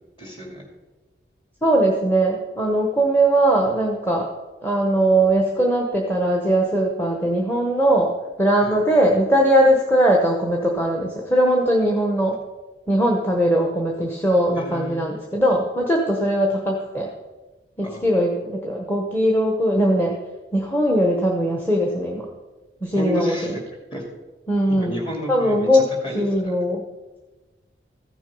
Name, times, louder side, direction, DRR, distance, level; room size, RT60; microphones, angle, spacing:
voice 1, 0.2-0.6 8.6-8.8 14.6-15.0 17.8-18.4 22.9-23.6 23.9-24.0 24.7-26.5, equal, 30° left, 0 dB, 2.5 m, -31 dB
voice 2, 1.6-4.3 4.6-8.1 8.4-12.4 12.9-17.1 17.8-20.2 20.5-22.3 22.8-23.3 24.5-24.9 25.3-25.8 26.1-26.8, right 1 dB, 10° left, -1 dB, 1.0 m, -20 dB
14.5 x 6.1 x 5.4 m, 1.2 s
head